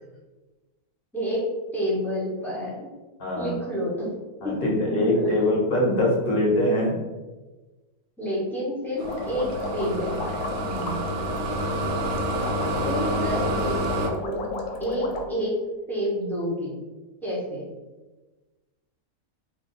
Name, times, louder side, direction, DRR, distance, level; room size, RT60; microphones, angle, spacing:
voice 1, 1.1-1.4 1.7-2.9 3.3-4.1 4.4-5.3 5.8-5.9 8.2-10.2 12.8-14.5 14.8-15.6 15.9-16.8 17.2-17.7, equal, ahead, -6 dB, 0.7 m, -29 dB
voice 2, 3.2-3.6 4.4-7.0 10.6-11.0, left 1 dB, 45° left, -3 dB, 0.8 m, -23 dB
sound 1, 9.0-15.2, left 3 dB, 90° left, 1.1 m, -34 dB
sound 2, 9.0-14.1, right 1 dB, 70° right, 0.8 m, -28 dB
2.6 x 2.3 x 3.9 m, 1.2 s
omnidirectional pair, 1.6 m